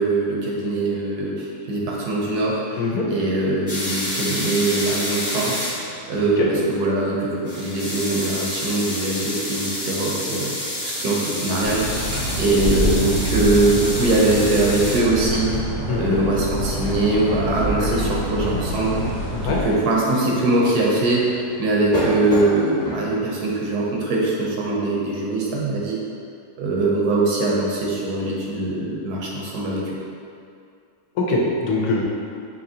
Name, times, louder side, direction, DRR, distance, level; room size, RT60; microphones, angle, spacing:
voice 1, 0.0-2.8 3.1-10.5 10.8-11.9 12.4-15.6 15.9-19.0 19.4-21.3 21.6-26.0 26.6-29.8, right 2 dB, 75° right, -4 dB, 1.2 m, -22 dB
sound 1, 3.7-23.2, left 1 dB, 30° left, 0.9 m, -30 dB
sound 2, 11.6-19.7, equal, 50° right, 0.6 m, -26 dB
voice 2, 15.9-16.2 19.3-19.6 31.2-32.0, left 3 dB, 75° left, -3 dB, 1.1 m, -22 dB
5.1 x 2.7 x 2.7 m, 2.4 s
omnidirectional pair, 1.7 m